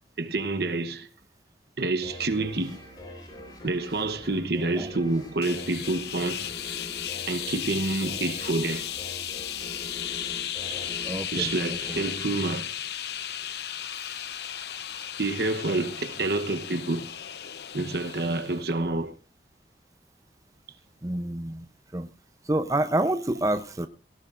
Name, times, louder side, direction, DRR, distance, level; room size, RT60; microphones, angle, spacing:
voice 1, 0.2-1.1 1.8-2.8 3.6-6.5 7.3-8.9 11.3-12.7 15.2-17.1 17.7-19.2, right 2 dB, 65° right, 1.0 m, -28 dB
sound 1, 2.0-13.3, equal, 25° left, 4.4 m, -44 dB
sound 2, 5.4-18.8, left 10 dB, 70° left, 0.7 m, -35 dB
voice 2, 11.0-11.8 21.0-21.6 21.9-22.1 22.5-23.9, right 1 dB, 20° right, 0.6 m, -27 dB
18.0 x 17.0 x 2.5 m
head